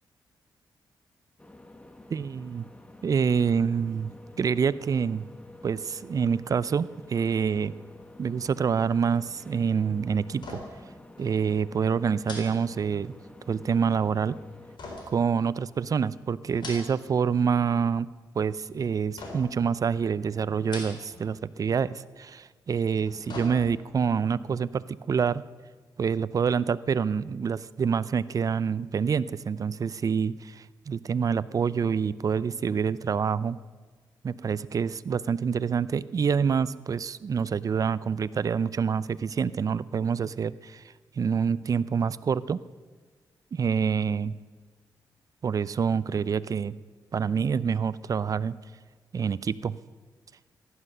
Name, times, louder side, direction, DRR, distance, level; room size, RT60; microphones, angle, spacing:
sound 1, 1.4-14.8, left 1 dB, 15° left, 1.3 m, -49 dB
voice 1, 2.1-2.6 3.0-4.1 4.4-5.3 5.6-7.7 8.2-10.6 11.2-13.1 13.5-14.4 15.1-18.1 18.3-25.4 26.0-33.6 34.2-40.8 41.2-42.6 43.5-44.3 45.4-46.7 47.1-48.5 49.1-49.8, right 6 dB, 50° right, 17 dB, 0.5 m, -27 dB
sound 2, 10.3-10.9 11.2-11.3 12.2-13.3 14.8-15.9 16.4-17.2 17.5-18.1 19.2-19.7 20.5-21.3 21.6-21.7 22.8-24.0 24.4-24.5, left 2 dB, 75° left, 4.0 m, -42 dB
15.5 x 11.5 x 6.7 m, 1.4 s
cardioid pair, 75°, 8 cm